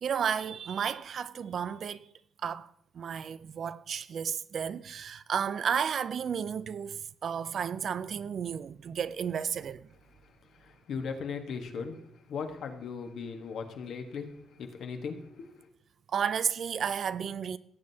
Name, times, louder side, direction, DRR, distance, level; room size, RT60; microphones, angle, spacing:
voice 1, 0.0-2.1 2.4-2.7 2.9-9.9 16.1-17.6, right 7 dB, 55° right, 0.4 m, -32 dB
voice 2, 10.6-12.0 12.3-15.5, left 5 dB, 70° left, 1.3 m, -38 dB
17.5 x 7.5 x 2.8 m
cardioid pair, 90°, 0 cm